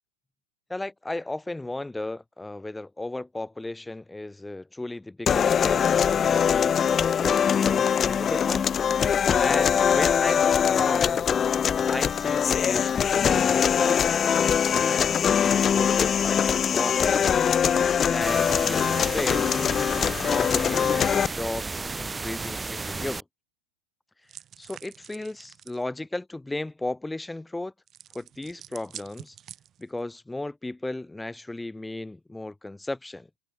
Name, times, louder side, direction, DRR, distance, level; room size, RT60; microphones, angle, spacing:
voice 1, 0.7-8.7 9.4-11.3 11.8-14.2 14.8-17.3 17.7-19.5 20.0-23.2 24.6-27.7 28.1-29.4 29.8-33.3, left 2 dB, 5° left, 4.1 m, -35 dB
sound 1, 5.3-21.3, left 8 dB, 20° left, 0.4 m, -22 dB
sound 2, 18.2-23.2, right 3 dB, 10° right, 4.1 m, -33 dB
sound 3, 24.3-25.8 27.9-30.0, right 10 dB, 30° right, 4.7 m, -47 dB
figure-of-eight pair, 90°, 0 cm